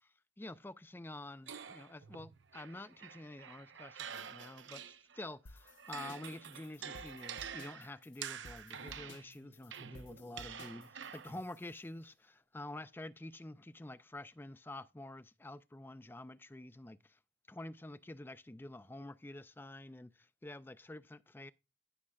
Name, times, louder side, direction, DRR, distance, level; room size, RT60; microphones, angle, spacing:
voice 1, 0.4-17.2 17.5-21.5, left 1 dB, 10° left, 0.4 m, -48 dB
sound 1, 1.5-5.3 5.6-11.5, right 8 dB, 75° right, 0.7 m, -48 dB
sound 2, 5.5-11.8, left 2 dB, 90° left, 0.9 m, -57 dB
17.0 x 6.4 x 2.3 m
head